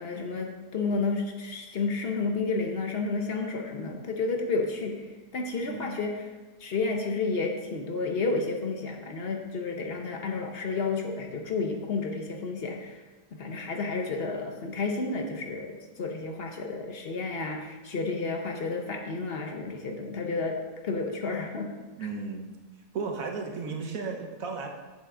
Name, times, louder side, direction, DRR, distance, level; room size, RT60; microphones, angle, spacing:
voice 1, 0.0-5.0 5.3-6.3 6.6-13.0 13.3-20.6 20.8-21.7, left 3 dB, 50° left, 3 dB, 0.8 m, -31 dB
voice 2, 5.6-6.0 22.0-22.5 22.9-24.7, right 4 dB, 60° right, 3 dB, 1.3 m, -34 dB
8.2 x 7.4 x 3.7 m, 1.3 s
omnidirectional pair, 1.8 m